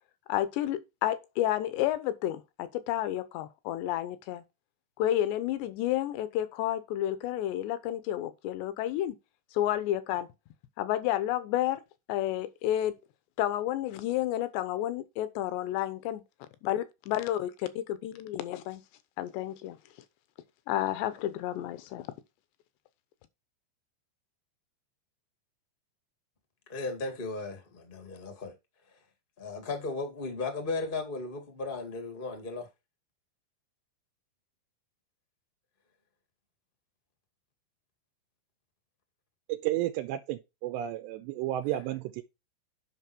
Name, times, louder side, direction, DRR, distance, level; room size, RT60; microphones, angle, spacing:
voice 1, 0.3-4.4 5.0-9.2 9.5-10.3 10.8-11.8 12.1-12.9 13.4-16.2 16.6-18.8 19.2-19.8 20.7-22.1, left 13 dB, 80° left, 3.0 m, -31 dB
voice 2, 26.7-28.5 29.4-32.7, left 3 dB, 35° left, 0.8 m, -36 dB
voice 3, 39.5-42.2, right 13 dB, 85° right, 2.9 m, -32 dB
9.3 x 5.5 x 4.4 m
omnidirectional pair, 5.1 m